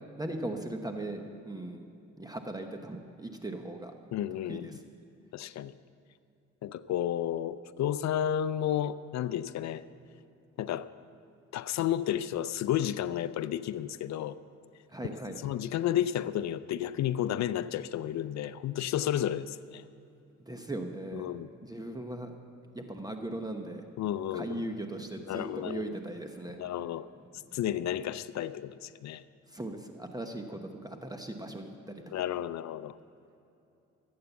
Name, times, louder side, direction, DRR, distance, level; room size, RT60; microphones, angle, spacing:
voice 1, 0.2-1.8 2.2-3.9 4.5-4.8 14.9-15.4 20.5-21.3 21.6-22.3 22.7-23.9 24.3-26.6 29.5-32.0, right 1 dB, 10° right, 1.0 m, -38 dB
voice 2, 4.1-4.7 5.3-5.7 6.6-9.8 10.6-10.9 11.5-14.4 15.4-19.8 21.1-21.5 24.0-24.6 25.3-25.9 26.6-27.1 27.5-29.2 32.1-33.0, left 11 dB, 65° left, 0.5 m, -32 dB
16.0 x 8.7 x 7.0 m
cardioid pair, 90°, 30 cm